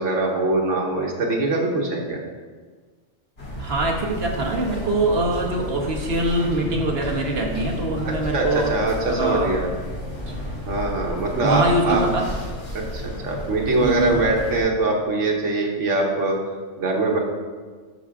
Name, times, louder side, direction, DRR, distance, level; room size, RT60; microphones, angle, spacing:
voice 1, 0.0-2.2 8.0-9.7 10.7-12.0 12.7-16.4 16.8-17.2, right 2 dB, 75° right, -1 dB, 1.7 m, -23 dB
sound 1, 3.4-14.6, left 1 dB, 55° left, 2.7 m, -32 dB
voice 2, 3.6-8.7 9.1-9.5 10.3-10.4 11.4-12.3 13.8-14.2, right 2 dB, 55° right, 1 dB, 1.4 m, -23 dB
12.5 x 4.9 x 3.6 m, 1.5 s
omnidirectional pair, 1.3 m